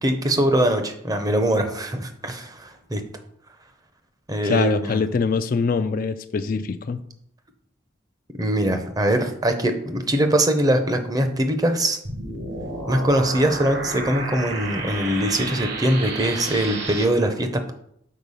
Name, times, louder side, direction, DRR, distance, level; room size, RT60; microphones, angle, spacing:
voice 1, 0.0-3.0 4.3-5.0 8.4-12.0 12.9-17.7, right 1 dB, 20° right, 7 dB, 0.7 m, -22 dB
voice 2, 4.4-7.0, left 5 dB, 45° left, 10 dB, 0.3 m, -23 dB
sound 1, 12.0-17.0, right 2 dB, 55° right, 1.2 m, -31 dB
6.5 x 4.5 x 5.5 m, 0.71 s
head